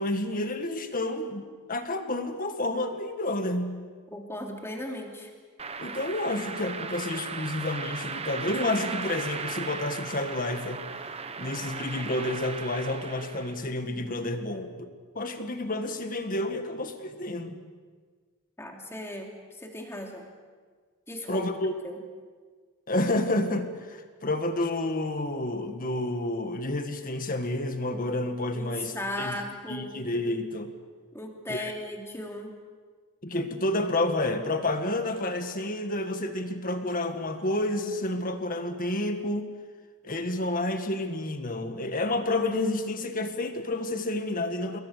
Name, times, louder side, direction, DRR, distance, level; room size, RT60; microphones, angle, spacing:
voice 1, 0.0-3.8 5.8-10.8 11.4-14.9 15.2-17.6 21.3-21.7 22.9-29.3 29.7-30.7 31.5-31.7 33.2-39.5 40.0-44.8, left 1 dB, 40° left, 7 dB, 1.9 m, -30 dB
voice 2, 4.1-5.3 18.6-19.3 19.6-20.3 21.1-21.4 21.8-22.0 28.5-30.0 31.1-32.5, left 1 dB, 10° left, 1 dB, 3.1 m, -37 dB
sound 1, 5.6-13.7, right 5 dB, 30° right, 1.0 m, -37 dB
27.5 x 21.5 x 6.7 m, 1.5 s
head